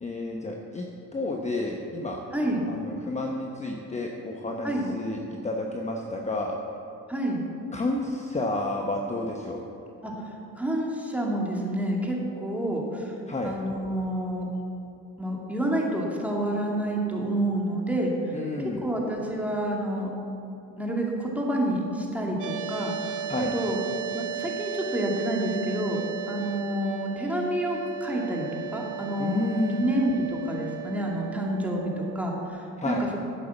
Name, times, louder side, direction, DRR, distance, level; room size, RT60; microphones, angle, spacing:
voice 1, 0.0-2.2 2.7-6.6 7.7-9.6 13.3-13.5 18.3-18.8 23.3-23.5 29.2-29.9 32.8-33.0, left 2 dB, 20° left, 1 dB, 1.1 m, -30 dB
voice 2, 2.3-2.6 4.6-4.9 7.1-7.4 10.0-10.1 10.6-13.1 13.4-14.5 15.2-18.1 18.8-20.1 20.8-23.2 23.5-23.8 24.1-26.0 26.3-29.5 29.8-33.2, right 1 dB, 5° right, -2 dB, 2.5 m, -28 dB
sound 1, 22.4-32.5, right 8 dB, 70° right, 1.0 m, -35 dB
11.0 x 8.4 x 7.2 m, 2.9 s
cardioid pair, 95°, 32 cm